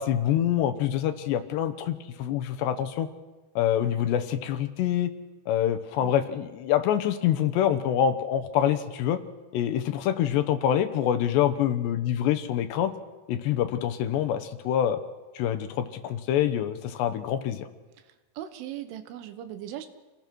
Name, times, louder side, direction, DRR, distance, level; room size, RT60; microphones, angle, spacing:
voice 1, 0.0-3.1 3.6-5.1 5.5-9.2 9.5-12.9 13.3-15.0 15.4-17.7, left 10 dB, 75° left, 10 dB, 3.0 m, -26 dB
voice 2, 18.4-19.9, right 11 dB, 85° right, 10 dB, 3.8 m, -38 dB
27.0 x 19.0 x 6.1 m, 1.2 s
omnidirectional pair, 5.4 m